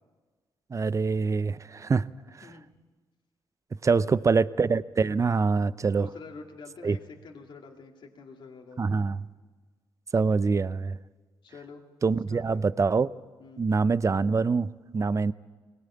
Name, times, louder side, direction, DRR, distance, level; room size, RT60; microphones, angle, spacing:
voice 1, 0.7-2.1 3.8-6.1 6.8-7.0 8.8-9.2 10.1-11.0 12.0-13.1 13.6-15.3, right 4 dB, 35° right, 17 dB, 0.6 m, -25 dB
voice 2, 2.4-2.7 3.9-4.1 5.9-9.1 11.4-11.8 12.3-12.7 13.4-13.7, left 4 dB, 60° left, 1 dB, 2.2 m, -46 dB
20.0 x 17.5 x 8.6 m, 1.4 s
cardioid pair, 65°, 9 cm